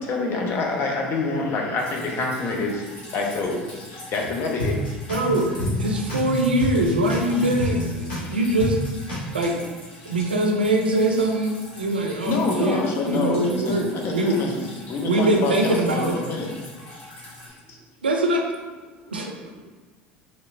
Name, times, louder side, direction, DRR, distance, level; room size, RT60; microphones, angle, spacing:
voice 1, 0.0-3.6 3.9-4.8 8.2-8.3 12.2-14.5 14.9-16.5 17.7-17.8, left 3 dB, 45° left, 0 dB, 0.6 m, -26 dB
Drip, 1.8-17.5, left 1 dB, 65° left, 1.2 m, -43 dB
sound 1, 4.2-4.3 4.6-8.3 8.6-9.2, left 1 dB, 85° left, 1.2 m, -28 dB
voice 2, 5.1-5.5 5.8-8.8 9.3-9.6 10.1-14.4 15.0-16.2 18.0-18.4 19.1-19.3, right 1 dB, 90° right, 2 dB, 0.4 m, -23 dB
voice 3, 17.6-18.0 18.8-19.7, right 2 dB, 25° right, 3 dB, 0.5 m, -53 dB
3.1 x 2.9 x 2.4 m, 1.3 s
hypercardioid pair, 70°, 5 cm